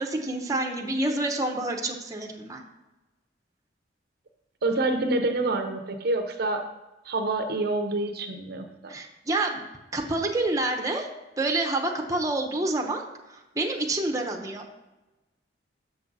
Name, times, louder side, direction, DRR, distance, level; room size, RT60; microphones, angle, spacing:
voice 1, 0.0-2.6 8.9-9.6 9.9-11.1 11.4-13.0 13.3-14.7, right 2 dB, 20° right, 2 dB, 0.7 m, -28 dB
voice 2, 4.6-6.7 7.1-8.7, right 2 dB, 55° right, 6 dB, 0.6 m, -27 dB
6.7 x 6.1 x 3.9 m, 1.1 s
head